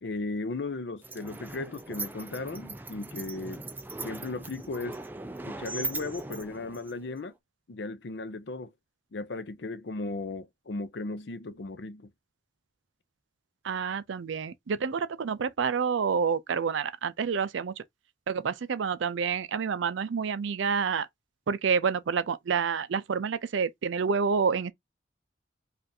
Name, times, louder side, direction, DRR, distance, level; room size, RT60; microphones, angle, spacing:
voice 1, 0.0-3.7 4.0-5.0 5.4-7.3 7.7-8.7 9.1-12.1, left 3 dB, 65° left, 0.5 m, -36 dB
sound 1, 1.0-7.2, right 3 dB, 10° right, 0.3 m, -39 dB
voice 2, 13.6-17.7 18.3-21.1 21.5-24.7, right 6 dB, 75° right, 0.4 m, -28 dB
5.2 x 2.5 x 2.7 m
head